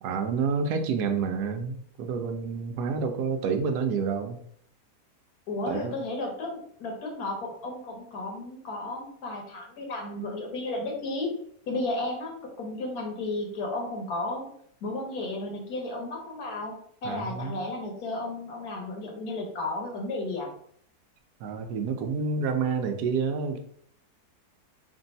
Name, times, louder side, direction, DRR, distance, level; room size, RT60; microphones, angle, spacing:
voice 1, 0.0-4.4 5.7-6.0 17.0-17.6 21.4-23.6, right 5 dB, 80° right, 6 dB, 1.1 m, -29 dB
voice 2, 5.5-11.3 11.7-14.5 14.8-16.7 17.0-20.5, left 2 dB, 70° left, 1 dB, 1.4 m, -33 dB
3.3 x 2.6 x 4.0 m, 0.64 s
omnidirectional pair, 1.7 m